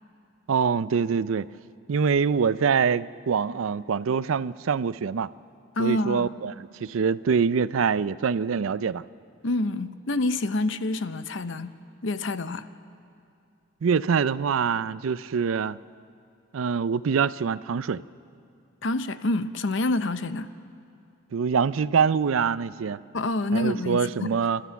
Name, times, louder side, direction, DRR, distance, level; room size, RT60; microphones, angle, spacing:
voice 1, 0.5-1.5 1.9-5.3 5.8-9.0 13.8-15.8 16.5-18.0 21.3-23.0 23.5-24.6, right 6 dB, 90° right, 17 dB, 0.4 m, -24 dB
voice 2, 5.8-6.3 9.4-11.7 12.0-12.7 18.8-20.5 23.1-24.4, left 2 dB, 65° left, 12 dB, 0.7 m, -27 dB
29.5 x 13.0 x 7.0 m, 2.5 s
head